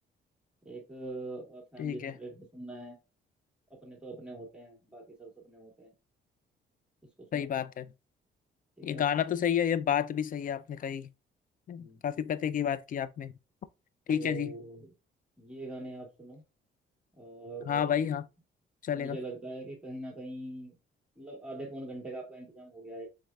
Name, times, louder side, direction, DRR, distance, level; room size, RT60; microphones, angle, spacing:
voice 1, 0.6-3.0 3.8-5.9 7.2-7.5 8.8-9.0 11.8-12.0 14.1-14.9 15.4-16.4 17.2-18.2 18.9-20.7 21.2-23.1, right 2 dB, 5° right, 1.6 m, -43 dB
voice 2, 1.8-2.2 7.3-7.9 8.8-11.1 11.7-13.3 14.1-14.6 17.6-18.3 18.8-19.2, left 9 dB, 45° left, 0.4 m, -30 dB
4.5 x 3.5 x 2.3 m
cardioid pair, 90°, 20 cm